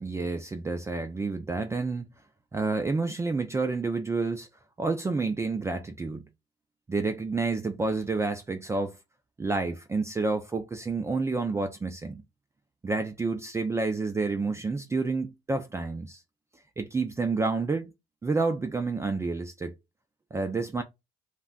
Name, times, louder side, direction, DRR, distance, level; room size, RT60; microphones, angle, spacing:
voice 1, 0.0-2.1 2.5-4.5 4.8-6.3 6.9-9.0 9.4-12.2 12.8-16.2 16.8-17.9 18.2-19.7 20.3-20.8, right 3 dB, 15° right, 0.4 m, -29 dB
2.5 x 2.2 x 3.7 m
cardioid pair, 110°, 17 cm